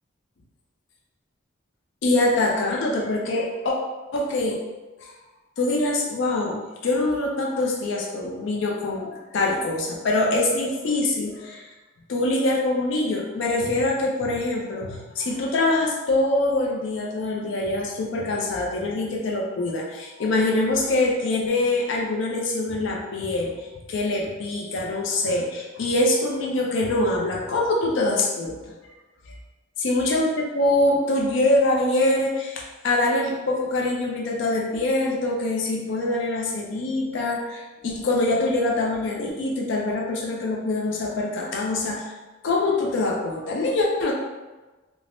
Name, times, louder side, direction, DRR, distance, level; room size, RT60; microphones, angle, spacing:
voice 1, 2.0-3.8 4.1-4.6 5.0-5.1 5.6-11.7 12.1-28.7 29.8-30.3 30.5-42.2 42.4-44.1, left 2 dB, 65° left, -1 dB, 0.4 m, -24 dB
3.3 x 2.0 x 2.5 m, 1.2 s
head